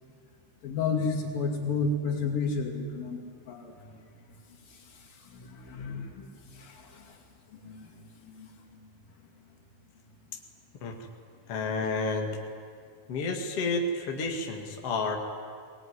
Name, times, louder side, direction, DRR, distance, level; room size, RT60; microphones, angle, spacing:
voice 1, 0.6-3.7 5.3-6.3 6.5-7.1 7.6-7.8 8.2-8.5, left 4 dB, 85° left, -1 dB, 4.5 m, -31 dB
voice 2, 11.5-12.3 13.1-15.2, left 3 dB, 45° left, 2 dB, 2.8 m, -30 dB
20.5 x 20.5 x 9.7 m, 2.2 s
omnidirectional pair, 4.0 m